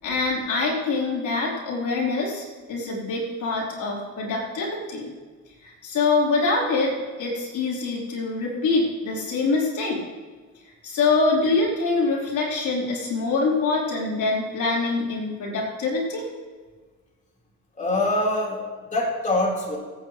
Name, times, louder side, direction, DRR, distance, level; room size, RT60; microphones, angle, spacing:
voice 1, 0.0-5.0 5.6-10.0 10.8-16.3, left 3 dB, 80° left, -4 dB, 4.3 m, -24 dB
voice 2, 17.8-19.8, left 1 dB, 25° left, -3 dB, 4.2 m, -24 dB
25.5 x 9.2 x 3.2 m, 1.5 s
cardioid pair, 90°, 30 cm